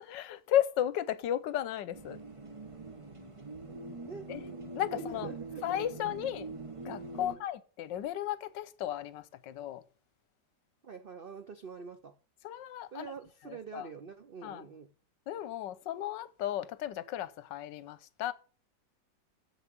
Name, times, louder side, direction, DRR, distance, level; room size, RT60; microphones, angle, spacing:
voice 1, 0.0-2.2 4.3-4.4 4.7-5.3 5.6-6.5 6.8-9.8 12.4-13.1 13.4-13.9 14.4-14.7 15.3-18.3, left 11 dB, 80° left, 1.4 m, -34 dB
sound 1, 1.9-7.4, right 2 dB, 20° right, 1.0 m, -44 dB
voice 2, 4.9-5.8 6.2-6.3 7.2-7.4 10.8-12.2 12.9-14.9, right 5 dB, 70° right, 0.5 m, -45 dB
7.2 x 7.2 x 7.7 m
omnidirectional pair, 2.0 m